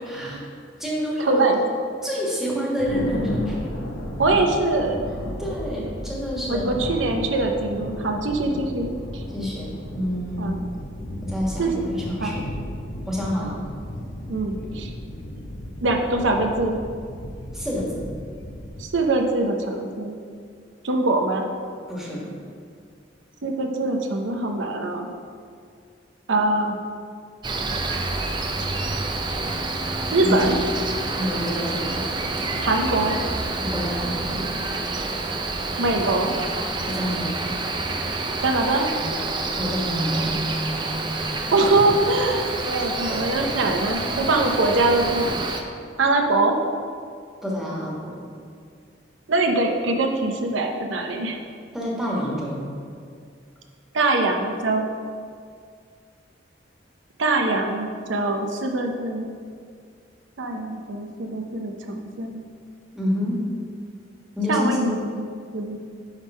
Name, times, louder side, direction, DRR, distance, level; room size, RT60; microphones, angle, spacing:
voice 1, 0.1-0.4 0.8-1.4 2.0-3.8 5.4-6.7 9.3-10.5 11.2-12.5 13.1-13.6 17.5-18.1 21.9-22.3 30.2-30.3 31.2-32.0 33.6-34.4 36.8-37.5 39.5-40.3 47.4-48.2 51.7-52.6 62.9-63.4 64.3-64.9, equal, ahead, -5 dB, 1.5 m, -28 dB
voice 2, 1.2-1.6 4.2-5.0 6.5-9.2 10.4-10.7 11.6-11.7 12.2-12.4 13.4-13.6 14.3-14.9 15.8-16.8 18.8-20.2 20.8-21.4 23.4-25.1 26.3-26.8 30.1-30.6 32.6-33.2 35.8-36.3 38.4-38.9 41.5-45.3 46.0-46.6 49.3-51.4 53.9-54.9 57.2-59.3 60.4-62.4 64.5-65.8, right 2 dB, 85° right, 3 dB, 0.7 m, -23 dB
Thunder, 2.8-18.8, left 1 dB, 65° left, 0.9 m, -34 dB
Cricket, 27.4-45.6, right 2 dB, 25° right, 0.5 m, -28 dB
9.7 x 3.6 x 5.4 m, 2.2 s
head